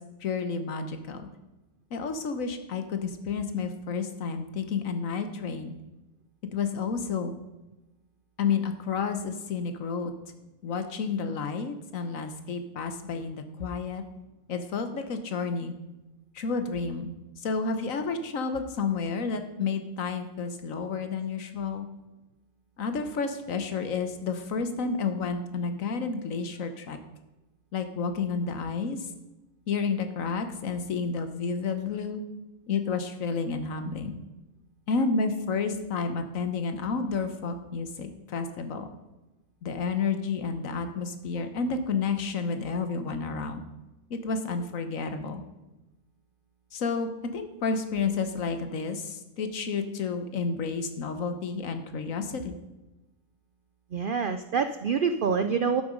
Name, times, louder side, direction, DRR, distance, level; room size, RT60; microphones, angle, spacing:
voice 1, 0.2-1.3 1.9-5.7 6.5-7.3 8.4-10.1 10.6-14.0 14.5-15.7 16.3-17.1 17.4-21.9 22.8-27.0 27.7-29.1 29.7-32.2 32.7-34.2 34.9-38.9 39.6-43.6 44.1-45.4 46.7-52.5, left 5 dB, 65° left, 8 dB, 1.4 m, -30 dB
voice 2, 53.9-55.8, right 6 dB, 80° right, 9 dB, 0.4 m, -26 dB
12.0 x 6.8 x 5.2 m, 1.0 s
omnidirectional pair, 1.6 m